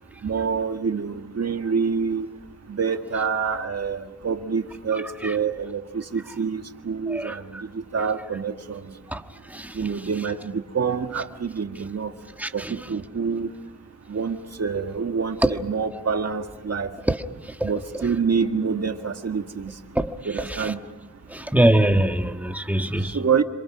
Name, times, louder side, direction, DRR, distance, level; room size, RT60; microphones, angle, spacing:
voice 1, 0.2-2.3 2.8-7.4 7.7-8.8 9.8-12.1 12.5-13.5 14.1-16.9 17.6-19.7 20.3-20.8 23.1-23.4, right 6 dB, 55° right, 1.9 m, -26 dB
voice 2, 12.4-12.7 15.4-15.5 17.1-17.2 17.4-17.7 19.9-20.1 20.6-20.7 21.3-23.2, right 1 dB, 5° right, 1.5 m, -22 dB
27.0 x 26.0 x 6.2 m
wide cardioid pair, 85°, 31 cm